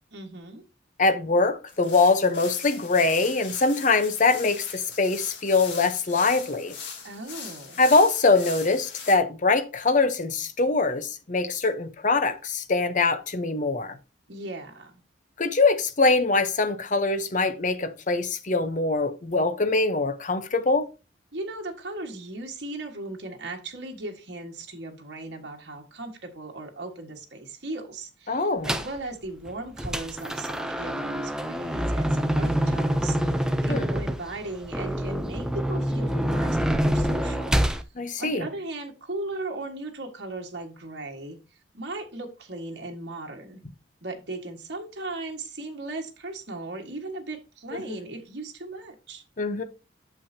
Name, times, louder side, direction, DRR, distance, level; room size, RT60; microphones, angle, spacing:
voice 1, 0.1-0.6 7.0-7.8 14.3-15.0 21.3-37.5 38.2-41.4 41.7-43.6 44.0-49.2, right 2 dB, 60° right, 1.6 m, -37 dB
voice 2, 1.0-6.7 7.8-14.0 15.4-20.9 28.3-28.7 33.7-33.8 38.0-38.5 47.7-48.0 49.4-49.6, left 3 dB, 40° left, 0.8 m, -23 dB
sound 1, 1.7-9.2, left 6 dB, 70° left, 1.9 m, -40 dB
sound 2, 28.6-29.0 29.5-37.8, equal, 5° right, 0.5 m, -26 dB
8.7 x 7.1 x 2.8 m
head